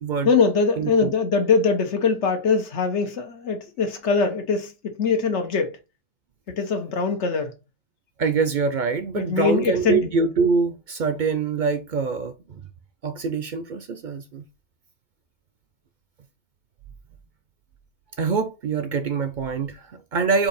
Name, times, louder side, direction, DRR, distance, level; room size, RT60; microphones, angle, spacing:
voice 1, 0.2-5.8 6.5-7.5 9.1-10.1, left 5 dB, 85° left, 1.2 m, -22 dB
voice 2, 0.8-1.1 8.2-12.6 13.0-14.4 18.2-20.5, right 5 dB, 55° right, 0.6 m, -24 dB
4.5 x 2.8 x 4.0 m
omnidirectional pair, 1.2 m